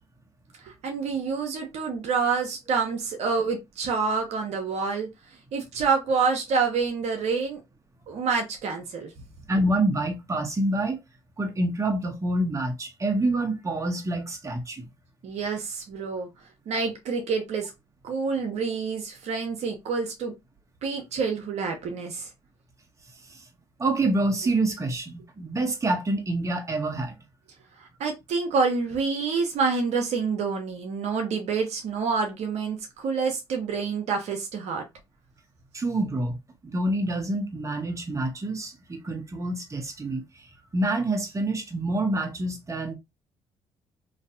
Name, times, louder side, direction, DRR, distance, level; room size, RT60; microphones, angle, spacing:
voice 1, 0.6-5.1 5.5-7.6 8.1-9.1 15.2-16.3 16.7-17.7 18.0-20.3 20.8-22.3 27.8-34.8, right 5 dB, 65° right, 0.9 m, -27 dB
voice 2, 9.5-11.0 11.4-14.9 23.8-27.2 35.7-36.4 36.6-40.2 40.7-42.9, right 2 dB, 25° right, 1.1 m, -27 dB
3.1 x 2.7 x 2.7 m
hypercardioid pair, 55°, 12 cm